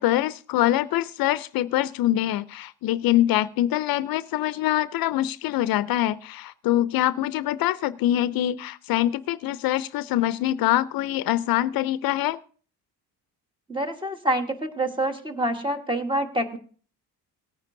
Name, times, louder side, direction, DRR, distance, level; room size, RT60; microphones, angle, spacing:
voice 1, 0.0-12.4, left 13 dB, 60° left, 15 dB, 0.5 m, -24 dB
voice 2, 13.7-16.6, right 1 dB, 10° right, 5 dB, 1.2 m, -26 dB
18.5 x 9.7 x 2.6 m, 0.41 s
cardioid pair, 130°, 39 cm